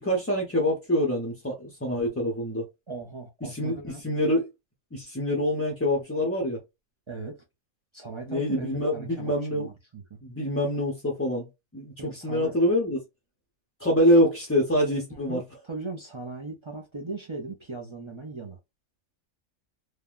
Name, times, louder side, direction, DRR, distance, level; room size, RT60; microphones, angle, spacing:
voice 1, 0.0-2.7 3.4-4.4 4.9-6.6 8.3-9.7 10.2-11.5 11.7-13.0 13.8-15.4, equal, 20° left, 0.4 m, -25 dB
voice 2, 2.9-4.0 7.1-7.4 7.9-10.2 12.0-12.6 15.2-18.6, right 3 dB, 45° right, 0.3 m, -38 dB
3.3 x 2.2 x 2.4 m
omnidirectional pair, 1.4 m